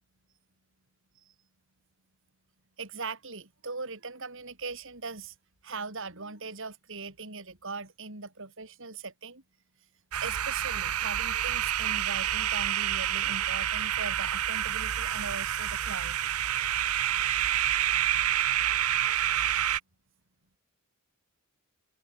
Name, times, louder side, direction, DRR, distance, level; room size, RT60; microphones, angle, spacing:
voice 1, 2.8-5.3 5.6-9.4 10.2-16.2, right 4 dB, 60° right, 4.9 m, -40 dB
sound 1, 10.1-19.8, right 11 dB, 90° right, 0.9 m, -28 dB
open air
head